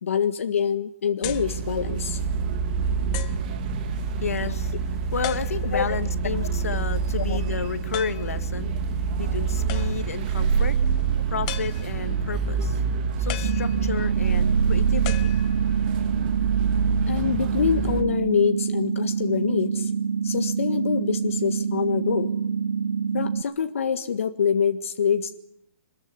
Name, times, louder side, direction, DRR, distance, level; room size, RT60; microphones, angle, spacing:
voice 1, 0.0-2.2 4.4-4.6 5.7-6.0 6.4-6.5 7.2-7.4 14.4-14.5 17.1-19.9 20.2-22.3 23.1-25.4, left 7 dB, 65° left, 1.7 m, -25 dB
sound 1, 1.2-1.6 2.3-2.4 3.1-3.5 5.2-5.9 7.9-8.3 9.7-10.2 11.5-12.2 13.3-14.2 15.0-15.9, left 15 dB, 25° left, 1.2 m, -37 dB
sound 2, 1.2-18.0, right 6 dB, 35° right, 3.0 m, -26 dB
voice 2, 3.9-8.8 9.2-15.5, left 6 dB, 90° left, 2.2 m, -32 dB
sound 3, 13.4-23.4, right 6 dB, 90° right, 1.3 m, -26 dB
26.5 x 21.5 x 9.8 m
hypercardioid pair, 165°, 8 cm